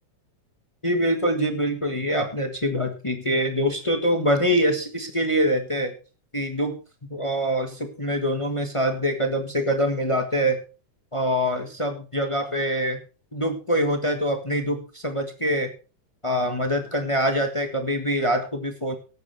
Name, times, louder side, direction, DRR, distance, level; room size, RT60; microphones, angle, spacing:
voice 1, 0.8-5.9 6.3-6.7 7.1-10.6 11.1-13.0 13.3-15.7 16.2-18.9, equal, 35° left, 4 dB, 0.4 m, -24 dB
18.0 x 9.7 x 3.4 m, 0.35 s
omnidirectional pair, 3.5 m